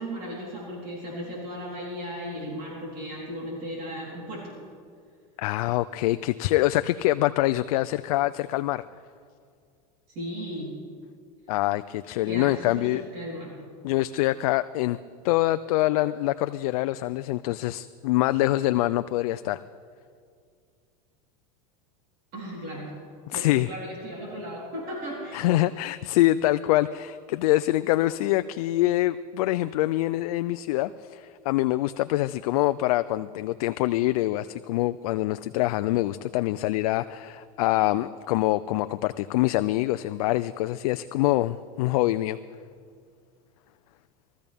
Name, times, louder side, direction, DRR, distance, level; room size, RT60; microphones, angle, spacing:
voice 1, 0.0-4.5 10.1-10.7 12.3-13.5 22.3-22.9 23.3-25.5, equal, 50° right, -4 dB, 3.8 m, -36 dB
voice 2, 5.4-8.8 11.5-13.0 13.8-15.0 15.2-19.6 23.3-23.7 25.3-42.4, left 16 dB, 75° left, 12 dB, 0.4 m, -25 dB
21.0 x 13.5 x 3.5 m, 2.2 s
supercardioid pair, 125°, 19 cm